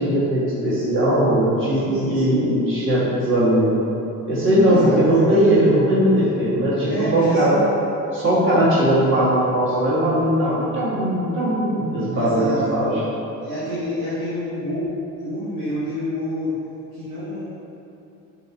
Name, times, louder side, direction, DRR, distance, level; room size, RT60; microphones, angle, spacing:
voice 1, 0.0-3.7 4.3-7.6 8.1-13.0, right 1 dB, 30° right, -9 dB, 1.2 m, -19 dB
voice 2, 1.7-2.4 4.7-5.3 6.9-7.8 12.1-12.8 13.4-14.9 15.2-16.5 16.9-17.4, equal, 85° right, -14 dB, 0.9 m, -28 dB
3.0 x 2.8 x 2.6 m, 2.8 s
hypercardioid pair, 55°, 42 cm